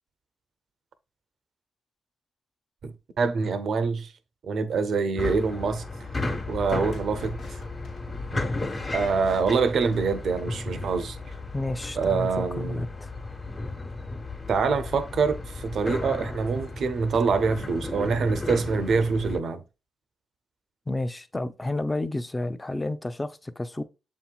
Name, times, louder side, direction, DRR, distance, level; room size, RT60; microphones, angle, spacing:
voice 1, 2.8-4.1 4.5-5.8 6.5-7.4 8.9-11.2 12.0-12.9 14.5-19.6, right 5 dB, 65° right, 0.5 m, -25 dB
sound 1, 5.2-19.4, left 2 dB, 40° left, 1.3 m, -34 dB
sound 2, 6.5-10.6, left 3 dB, 75° left, 1.4 m, -45 dB
voice 2, 11.5-13.1 20.9-23.8, left 2 dB, 20° left, 0.5 m, -31 dB
6.9 x 2.9 x 2.3 m
supercardioid pair, 50°, 0 cm